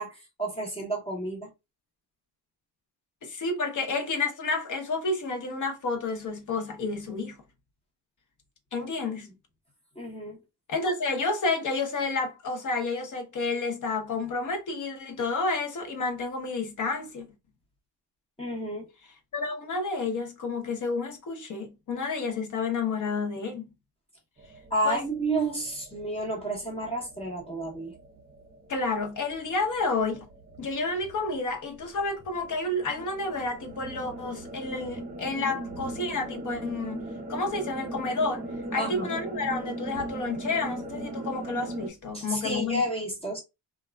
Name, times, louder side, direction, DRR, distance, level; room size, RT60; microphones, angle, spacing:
voice 1, 0.0-1.5 8.7-8.9 10.0-10.4 18.4-18.9 24.7-27.9 38.8-39.1 42.1-43.4, right 1 dB, 15° left, 0.7 m, -31 dB
voice 2, 3.2-7.4 8.7-9.3 10.7-17.3 19.3-23.7 24.8-25.0 28.7-30.3 30.6-37.0 37.3-38.4 38.7-42.8, left 3 dB, 45° left, 0.8 m, -30 dB
sound 1, 24.4-41.9, right 1 dB, 20° right, 0.4 m, -40 dB
2.8 x 2.3 x 2.2 m
cardioid pair, 125°, 43 cm